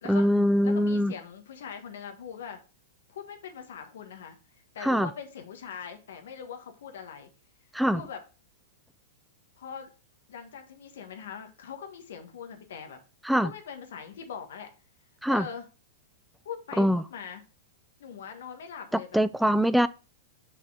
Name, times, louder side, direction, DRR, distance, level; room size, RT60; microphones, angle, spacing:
voice 1, 0.1-1.1 4.8-5.1 7.7-8.0 13.2-13.5 15.2-15.5 16.8-17.0 19.1-19.9, equal, ahead, 0.4 m, -23 dB
voice 2, 0.6-2.6 3.1-4.4 4.7-7.3 7.9-8.2 9.6-9.9 10.3-13.0 13.4-14.7 15.3-15.7 16.4-17.4 18.0-19.2, left 7 dB, 75° left, 1.6 m, -41 dB
6.4 x 5.4 x 3.5 m
hypercardioid pair, 115°, 0 cm